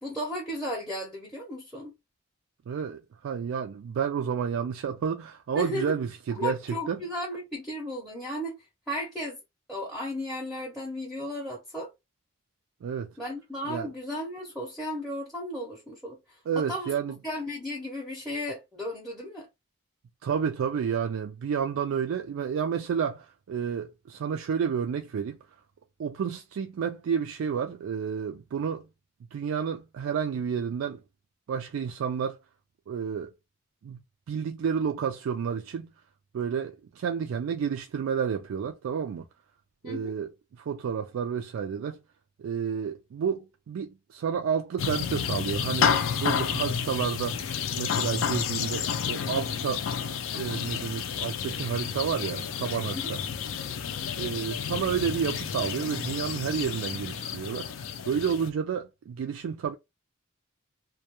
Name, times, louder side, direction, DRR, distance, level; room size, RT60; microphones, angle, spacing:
voice 1, 0.0-1.9 5.6-6.0 6.4-9.4 9.7-11.9 13.2-16.9 17.2-19.5 39.8-40.2 52.9-53.0, left 1 dB, ahead, 0.5 m, -35 dB
voice 2, 2.7-7.0 12.8-13.1 13.7-13.9 16.5-17.2 20.2-25.4 26.0-28.9 29.3-31.0 31.5-32.4 32.9-33.3 33.8-34.0 34.3-35.9 36.3-39.3 39.8-40.3 40.6-42.0 42.4-47.4 47.8-49.9 50.3-53.2 54.2-59.7, right 7 dB, 85° right, 0.3 m, -30 dB
sound 1, 44.8-58.5, left 7 dB, 80° left, 0.4 m, -30 dB
2.2 x 2.2 x 2.8 m
head